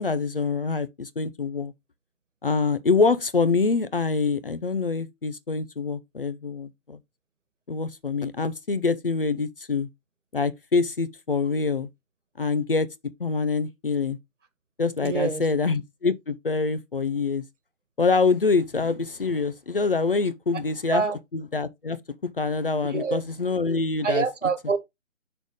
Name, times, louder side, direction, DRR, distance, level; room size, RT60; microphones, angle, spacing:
voice 1, 0.0-1.7 2.4-7.0 7.7-9.9 10.3-11.9 12.4-12.9 13.2-14.2 14.8-17.4 18.0-21.0 21.3-22.0 22.4-24.2, left 4 dB, 45° left, 0.6 m, -25 dB
voice 2, 15.0-15.4 20.9-21.2 22.8-23.2 24.0-24.8, right 5 dB, 65° right, 1.9 m, -25 dB
6.4 x 3.4 x 5.3 m
hypercardioid pair, 170°, 39 cm